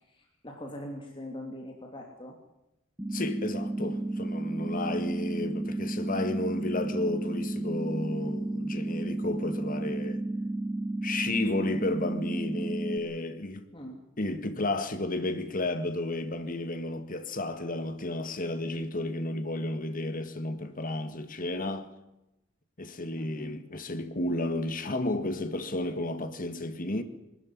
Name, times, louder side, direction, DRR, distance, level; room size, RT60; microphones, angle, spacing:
voice 1, 0.1-2.4 13.7-14.0 23.1-23.6, left 1 dB, 25° left, 3.0 m, -42 dB
sound 1, 3.0-13.0, right 2 dB, 10° right, 1.2 m, -32 dB
voice 2, 3.1-10.2 11.0-13.7 14.2-21.9 22.8-27.0, left 2 dB, 45° left, 1.9 m, -32 dB
22.0 x 13.5 x 9.8 m
head